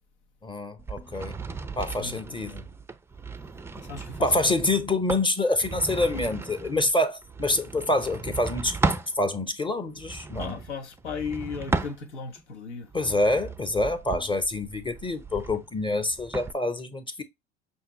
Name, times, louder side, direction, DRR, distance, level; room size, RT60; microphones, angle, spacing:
voice 1, 0.4-1.4 1.7-2.7 4.2-8.8 9.1-10.6 12.9-17.2, left 2 dB, 15° left, 0.8 m, -26 dB
sound 1, 0.8-9.1 9.9-12.4 12.9-16.5, right 3 dB, 10° right, 0.4 m, -35 dB
voice 2, 2.0-2.6 3.7-4.5 10.4-12.9, left 5 dB, 85° left, 0.9 m, -36 dB
5.7 x 2.8 x 2.9 m
hypercardioid pair, 70°, 33 cm